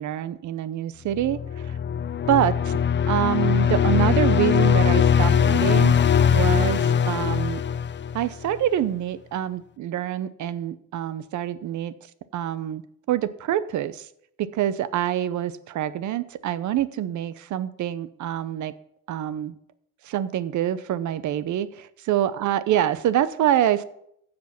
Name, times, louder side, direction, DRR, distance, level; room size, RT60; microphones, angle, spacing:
voice 1, 0.0-1.8 2.3-2.7 3.1-5.9 6.3-7.6 8.1-11.9 12.3-12.8 13.1-14.1 14.4-18.7 19.1-19.6 20.0-23.8, right 11 dB, 70° right, 15 dB, 0.8 m, -26 dB
sound 1, 1.1-8.5, left 8 dB, 40° left, 0.7 m, -21 dB
15.0 x 5.2 x 5.9 m, 0.72 s
cardioid pair, 90°, 30 cm